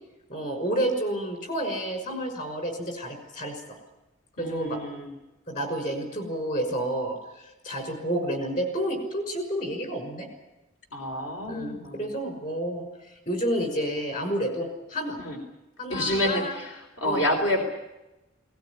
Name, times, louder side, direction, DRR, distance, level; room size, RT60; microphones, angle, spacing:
voice 1, 0.3-3.8 4.4-4.8 5.5-10.3 11.5-15.2 15.8-16.6 17.0-17.2, right 1 dB, 40° left, 5 dB, 6.1 m, -30 dB
voice 2, 4.4-5.1 10.9-12.1 15.2-15.4 15.9-17.6, left 1 dB, 70° left, 3 dB, 3.9 m, -28 dB
19.5 x 19.0 x 9.9 m, 0.98 s
head